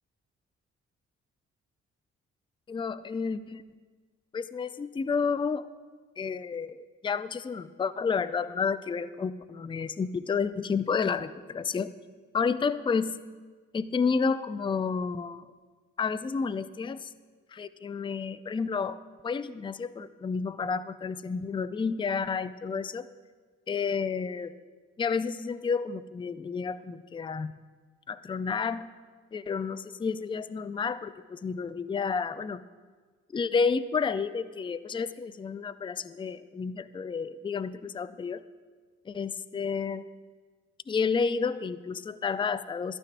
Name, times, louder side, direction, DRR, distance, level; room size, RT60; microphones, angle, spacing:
voice 1, 2.7-3.7 4.3-5.6 6.2-11.9 12.3-13.2 13.7-15.5 16.0-17.1 17.5-19.0 19.2-23.1 23.7-24.5 25.0-27.5 28.1-28.9 29.3-32.6 33.3-38.4 39.1-40.0 40.9-43.0, left 5 dB, 15° left, 13 dB, 0.4 m, -30 dB
12.5 x 12.0 x 2.5 m, 1.5 s
hypercardioid pair, 45°, 33 cm